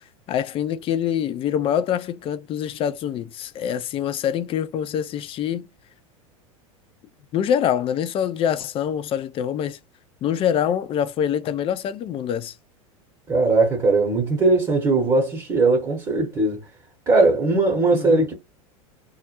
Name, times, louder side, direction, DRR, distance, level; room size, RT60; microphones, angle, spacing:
voice 1, 0.3-5.7 7.3-9.8 10.2-12.5 17.9-18.2, left 9 dB, 30° left, 0.4 m, -25 dB
voice 2, 13.3-16.6 17.1-18.3, right 3 dB, 25° right, 0.9 m, -19 dB
2.3 x 2.0 x 2.9 m
hypercardioid pair, 90°, 18 cm